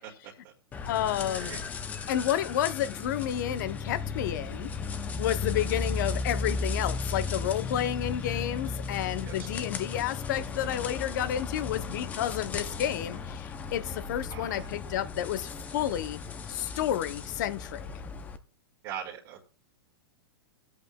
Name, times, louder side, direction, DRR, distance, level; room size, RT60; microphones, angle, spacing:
sound 1, 0.7-18.4, left 4 dB, 15° left, 0.5 m, -35 dB
voice 1, 0.9-1.6 2.1-4.7 5.2-16.2 16.5-17.9, left 11 dB, 50° left, 0.7 m, -31 dB
voice 2, 14.3-14.7 18.8-19.4, right 9 dB, 35° right, 1.9 m, -41 dB
24.5 x 8.2 x 2.2 m
supercardioid pair, 160°, 12 cm